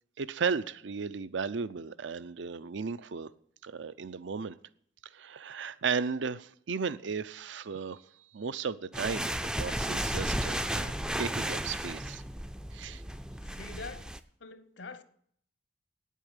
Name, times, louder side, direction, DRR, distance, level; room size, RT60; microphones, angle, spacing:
voice 1, 0.2-3.3 3.6-4.6 5.1-8.0 8.3-10.9 11.2-12.2 12.7-13.0, right 5 dB, 70° right, 0.5 m, -35 dB
sound 1, 8.9-14.2, right 1 dB, 5° right, 0.4 m, -34 dB
voice 2, 13.4-14.1 14.4-15.0, left 3 dB, 65° left, 1.0 m, -44 dB
9.4 x 8.3 x 9.1 m
head